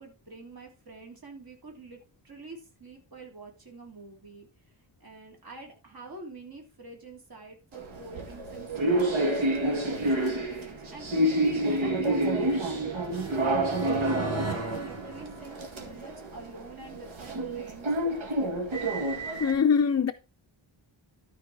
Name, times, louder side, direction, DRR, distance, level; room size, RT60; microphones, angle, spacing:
voice 1, 0.0-4.5 5.0-9.2 9.8-17.9, right 3 dB, 50° right, 3.1 m, -46 dB
sound 1, 7.7-19.5, right 1 dB, 80° right, 2.1 m, -28 dB
sound 2, 10.5-16.2, right 3 dB, 35° right, 2.1 m, -40 dB
voice 2, 19.4-20.1, left 6 dB, 35° left, 0.4 m, -22 dB
12.5 x 4.7 x 4.7 m
wide cardioid pair, 160°, 47 cm